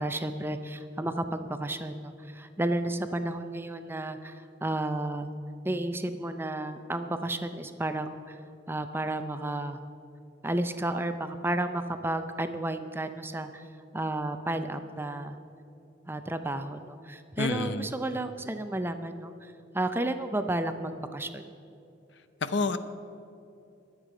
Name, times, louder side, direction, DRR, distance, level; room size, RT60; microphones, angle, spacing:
voice 1, 0.0-5.3 5.6-8.4 8.7-9.8 10.4-13.7 13.9-15.4 16.1-21.4, right 1 dB, 10° right, 8 dB, 0.5 m, -32 dB
voice 2, 17.4-17.9 22.4-22.8, left 3 dB, 65° left, 11 dB, 0.7 m, -28 dB
22.0 x 8.3 x 4.9 m, 2.7 s
head